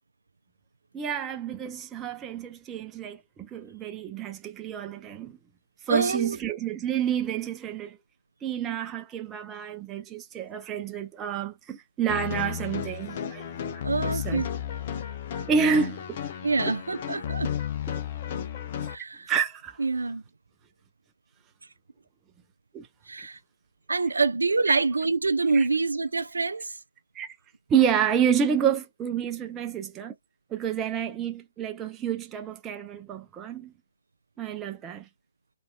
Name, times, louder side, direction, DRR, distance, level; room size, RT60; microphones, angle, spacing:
voice 1, 0.9-5.4 5.9-8.0 8.4-13.5 14.1-14.4 15.5-16.2 19.3-19.8 22.7-22.9 24.7-24.8 25.5-25.7 27.1-27.3 27.7-30.1 30.5-33.7 34.4-35.1, right 8 dB, 15° right, 0.6 m, -29 dB
voice 2, 5.9-6.4 13.8-14.5 16.4-17.5 18.9-19.3 19.8-20.2 23.1-23.4 23.9-26.8, right 3 dB, 70° right, 0.4 m, -26 dB
sound 1, 12.1-18.9, left 8 dB, 40° left, 0.6 m, -33 dB
4.1 x 2.6 x 2.3 m
figure-of-eight pair, 130°, 0 cm